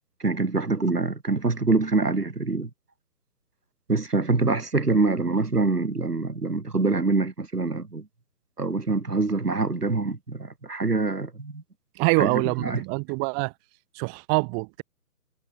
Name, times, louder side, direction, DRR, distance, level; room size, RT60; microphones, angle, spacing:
voice 1, 0.2-2.7 3.9-8.1 8.6-11.6 12.2-12.8, right 3 dB, 80° right, 4.1 m, -25 dB
voice 2, 12.0-13.5 13.9-14.8, right 40 dB or more, 20° right, 3.4 m, -25 dB
figure-of-eight pair, 140°, 46 cm